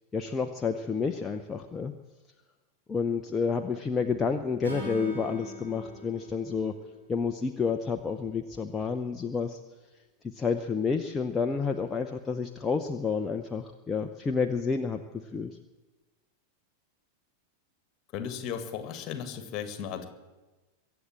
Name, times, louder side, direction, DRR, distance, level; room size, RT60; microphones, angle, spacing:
voice 1, 0.1-1.9 2.9-6.8 7.1-9.6 10.2-15.0 15.3-15.5, left 5 dB, 15° left, 5 dB, 0.8 m, -30 dB
Acoustic guitar / Strum, 4.6-7.9, equal, 65° right, 4.8 m, -43 dB
voice 2, 18.1-20.1, left 8 dB, 35° left, 9 dB, 1.9 m, -36 dB
23.0 x 8.1 x 7.6 m, 1.2 s
figure-of-eight pair, 90°, 0 cm